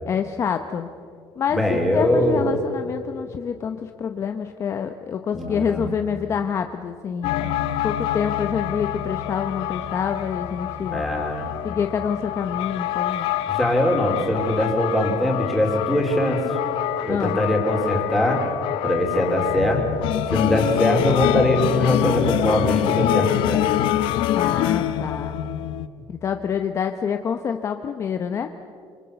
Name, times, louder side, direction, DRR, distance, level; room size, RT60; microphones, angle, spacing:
voice 1, 0.1-0.9 1.4-7.5 7.8-11.0 11.6-13.3 17.1-17.4 24.3-25.4 26.1-28.5, left 7 dB, 35° left, 7 dB, 0.9 m, -27 dB
voice 2, 1.5-2.5 5.3-5.9 10.9-11.5 13.5-16.4 17.0-18.4 18.8-19.8 20.3-23.7, left 1 dB, ahead, 0 dB, 4.0 m, -22 dB
sound 1, 7.2-25.9, left 12 dB, 90° left, 1.0 m, -25 dB
28.0 x 24.5 x 6.9 m, 2.3 s
cardioid pair, 165°, 9 cm